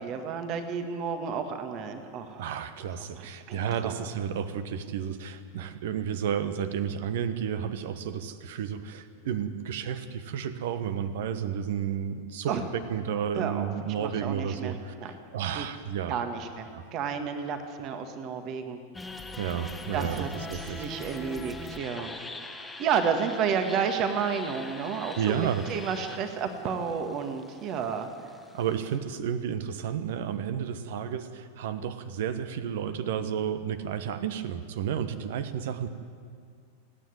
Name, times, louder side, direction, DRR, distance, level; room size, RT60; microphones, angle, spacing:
voice 1, 0.0-2.5 3.1-3.9 12.5-12.6 13.4-13.7 14.0-15.1 15.6-15.7 16.1-18.8 19.9-22.1 22.8-28.1, right 6 dB, 35° right, 7 dB, 1.8 m, -31 dB
voice 2, 2.4-16.2 16.7-16.8 19.4-20.9 25.1-25.6 28.5-35.9, right 8 dB, 55° right, 11 dB, 1.2 m, -32 dB
sound 1, 18.9-29.0, left 2 dB, 5° left, 1.5 m, -42 dB
28.0 x 9.7 x 9.7 m, 2.2 s
figure-of-eight pair, 90°, 0 cm